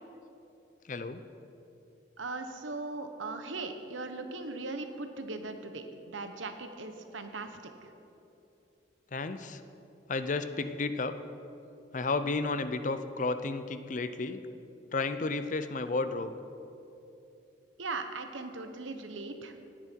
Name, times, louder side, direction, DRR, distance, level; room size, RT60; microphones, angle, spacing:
voice 1, 0.8-1.2 9.1-9.6 10.1-11.1 11.9-14.4 14.9-16.3, left 3 dB, 40° left, 11 dB, 0.5 m, -32 dB
voice 2, 2.2-7.6 17.8-19.5, right 3 dB, 90° right, 7 dB, 1.1 m, -39 dB
18.0 x 10.0 x 4.5 m, 2.9 s
head